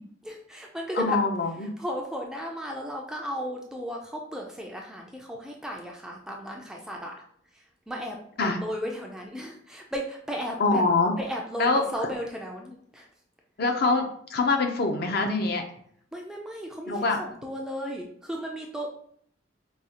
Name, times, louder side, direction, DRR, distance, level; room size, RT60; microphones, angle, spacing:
voice 1, 0.2-1.2 1.6-7.1 7.5-10.8 11.2-13.1 16.1-18.9, equal, 5° right, 0 dB, 0.3 m, -35 dB
voice 2, 1.0-1.7 8.4-8.6 10.6-11.1 11.6-11.8 13.6-15.6 16.9-17.2, left 3 dB, 50° left, 4 dB, 0.5 m, -24 dB
4.7 x 2.3 x 2.8 m, 0.64 s
head